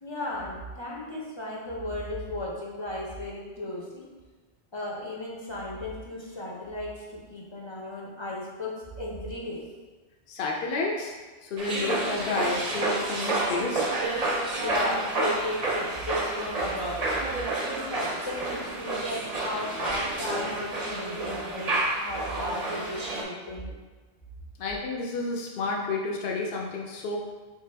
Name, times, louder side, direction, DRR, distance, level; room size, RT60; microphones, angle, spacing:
voice 1, 0.0-4.1 4.7-9.6 14.3-17.0 17.6-23.7, left 1 dB, 35° left, -4 dB, 0.5 m, -35 dB
voice 2, 10.3-11.1 11.4-13.9 24.6-27.2, left 3 dB, 70° left, -1 dB, 0.8 m, -30 dB
sound 1, 11.6-23.2, right 2 dB, 45° right, 0.7 m, -30 dB
3.6 x 3.3 x 3.3 m, 1.3 s
omnidirectional pair, 1.1 m